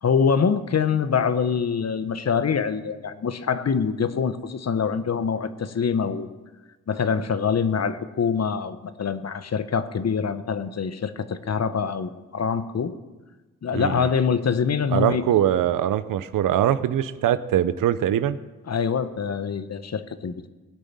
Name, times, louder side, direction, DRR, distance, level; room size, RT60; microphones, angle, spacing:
voice 1, 0.0-6.3 6.9-12.9 13.6-15.2 18.7-20.5, left 6 dB, 50° left, 12 dB, 1.1 m, -25 dB
voice 2, 13.7-14.1 14.9-18.4, right 11 dB, 80° right, 15 dB, 0.7 m, -22 dB
18.0 x 6.5 x 9.0 m, 1.2 s
supercardioid pair, 50°, 32 cm